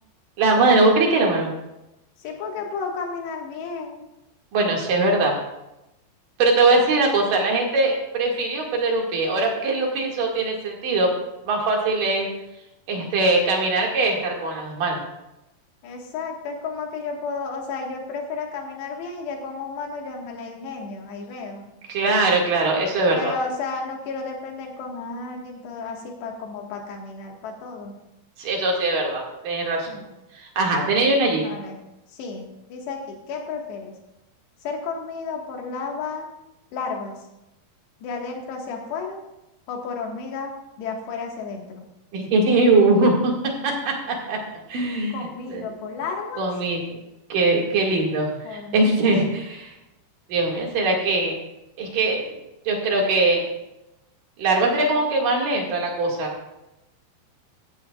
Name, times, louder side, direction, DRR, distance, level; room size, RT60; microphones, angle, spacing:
voice 1, 0.4-1.5 4.5-5.4 6.4-11.1 11.4-12.3 12.9-15.0 21.9-23.3 28.4-29.9 30.3-31.5 42.1-43.3 43.6-44.4 44.7-45.2 45.5-45.7 46.4-46.8 47.3-49.7 50.3-51.3 51.8-52.4 52.7-53.4 54.4-56.3, right 2 dB, 55° right, -1 dB, 3.5 m, -21 dB
voice 2, 2.2-4.1 15.8-21.7 23.1-28.0 29.9-30.1 31.4-31.8 32.1-33.9 34.6-36.3 36.7-37.2 38.0-39.2 39.7-41.8 45.1-46.5 48.4-49.0, left 4 dB, 90° left, 1 dB, 3.9 m, -32 dB
14.5 x 14.5 x 2.4 m, 0.92 s
omnidirectional pair, 4.7 m